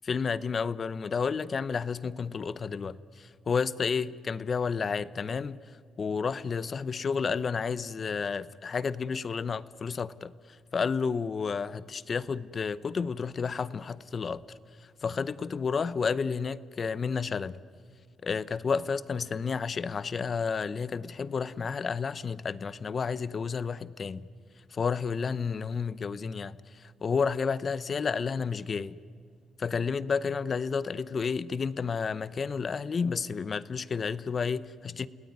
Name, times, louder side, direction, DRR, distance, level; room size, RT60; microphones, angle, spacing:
voice 1, 0.0-5.6 6.0-10.3 10.7-14.4 14.8-17.6 18.2-24.3 24.7-28.9 29.6-35.1, left 5 dB, 40° left, 0.8 m, -31 dB
30.0 x 18.0 x 9.6 m
cardioid pair, 90°, 0 cm